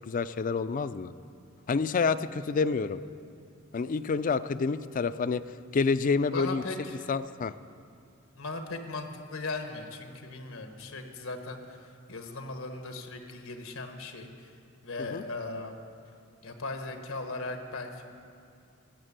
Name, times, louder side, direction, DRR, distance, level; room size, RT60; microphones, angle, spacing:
voice 1, 0.1-1.1 1.7-3.0 3.7-5.4 5.7-6.6 7.1-7.5 15.1-15.2, left 4 dB, 40° left, 14 dB, 0.4 m, -28 dB
voice 2, 6.2-7.0 8.3-14.5 14.8-15.8 16.4-18.0, left 3 dB, 85° left, 5 dB, 1.3 m, -38 dB
15.5 x 6.7 x 8.8 m, 2.5 s
head